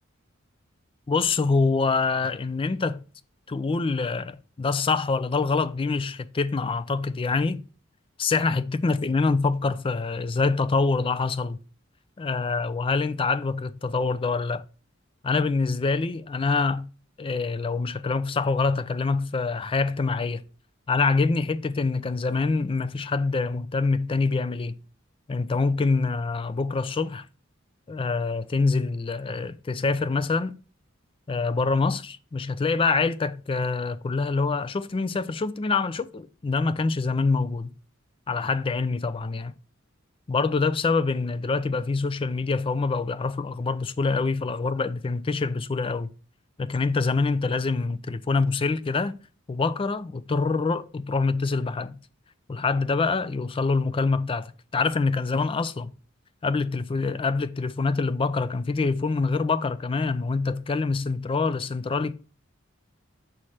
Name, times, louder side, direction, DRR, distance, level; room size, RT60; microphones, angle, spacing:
voice 1, 1.1-3.0 3.5-7.6 8.2-11.6 12.2-14.6 15.2-16.9 17.2-20.4 20.9-24.8 25.3-27.2 27.9-30.6 31.3-37.7 38.3-39.5 40.3-46.1 46.6-49.1 49.5-52.0 52.5-55.9 56.4-62.1, left 4 dB, 25° left, 0.4 m, -25 dB
6.2 x 3.2 x 5.6 m
head